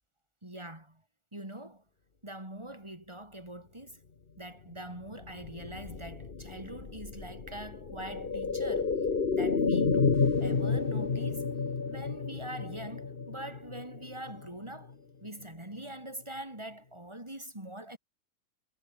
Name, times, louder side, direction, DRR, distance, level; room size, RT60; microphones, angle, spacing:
voice 1, 0.4-1.0 1.3-1.8 2.2-4.0 4.4-8.9 9.3-11.5 11.9-14.9 15.2-18.0, right 1 dB, 20° right, 4.6 m, -43 dB
sound 1, 5.1-14.9 15.2-15.3, left 4 dB, 40° left, 1.7 m, -31 dB
omnidirectional pair, 1.6 m